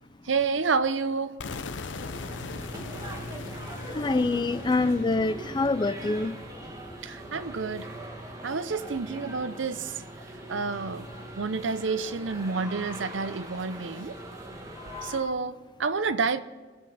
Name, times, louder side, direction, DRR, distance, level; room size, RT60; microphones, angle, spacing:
voice 1, 0.3-1.4 7.0-7.9 8.4-10.0 10.5-11.1 11.4-14.2 15.0-16.4, right 4 dB, 90° right, 0.7 m, -29 dB
sound 1, 1.4-7.3, left 4 dB, 80° left, 0.7 m, -41 dB
sound 2, 2.0-15.2, right 1 dB, 20° right, 1.7 m, -41 dB
voice 2, 3.9-6.4 14.9-15.3, left 3 dB, 25° left, 0.4 m, -26 dB
19.5 x 7.8 x 4.2 m
head